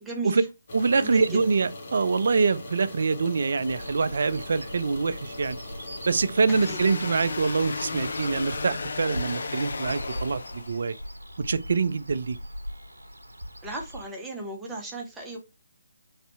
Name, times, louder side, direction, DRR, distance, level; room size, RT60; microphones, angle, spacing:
voice 1, 0.0-0.5 1.0-1.4 6.7-6.8 13.6-15.4, right 2 dB, 5° right, 1.0 m, -35 dB
sound 1, 0.7-8.7, left 2 dB, 45° left, 1.1 m, -41 dB
voice 2, 0.7-5.6 6.1-10.9 11.4-12.4, right 4 dB, 60° right, 0.4 m, -25 dB
sound 2, 3.6-14.1, equal, 90° right, 0.8 m, -40 dB
sound 3, 6.5-11.0, left 4 dB, 60° left, 0.5 m, -34 dB
3.3 x 2.7 x 4.3 m
figure-of-eight pair, 145°, 0 cm